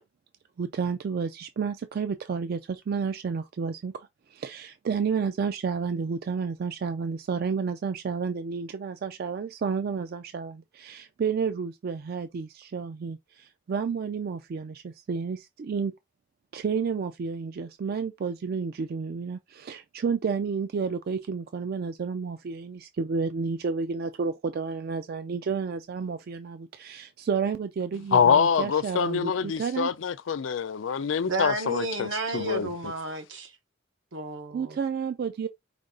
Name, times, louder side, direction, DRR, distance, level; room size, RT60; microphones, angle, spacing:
voice 1, 0.6-15.9 16.5-29.9 34.5-35.5, right 5 dB, 55° right, 0.3 m, -31 dB
voice 2, 28.1-32.1 32.3-32.7, left 6 dB, 85° left, 0.4 m, -25 dB
voice 3, 31.3-33.5 34.1-34.8, right 2 dB, 90° right, 1.1 m, -32 dB
5.0 x 2.4 x 3.7 m
head